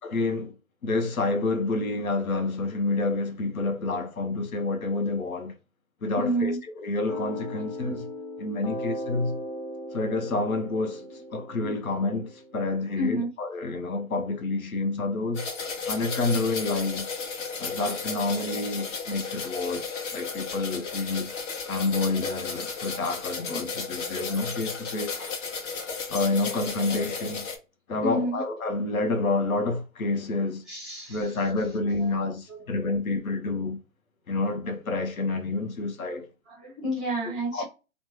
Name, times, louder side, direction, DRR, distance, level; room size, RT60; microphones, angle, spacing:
voice 1, 0.1-0.5 0.8-5.5 6.0-6.5 6.8-8.0 8.4-9.4 9.9-11.1 11.3-15.4 15.9-17.1 17.6-21.3 21.7-25.2 26.1-27.4 27.9-30.6 31.1-33.8 34.3-36.3 37.5-37.6, left 3 dB, 90° left, 0.8 m, -28 dB
voice 2, 6.2-6.6 11.1-11.2 11.4-11.5 12.9-13.3 20.8-20.9 24.1-24.4 25.2-25.3 28.0-28.4 30.7-31.5 31.9-32.1 32.5-32.7 36.0-37.6, right 1 dB, ahead, 0.5 m, -31 dB
sound 1, 7.1-12.6, left 1 dB, 45° left, 1.0 m, -38 dB
sound 2, 15.3-27.6, left 5 dB, 60° left, 1.1 m, -34 dB
3.1 x 2.1 x 3.1 m
hypercardioid pair, 140°, 41 cm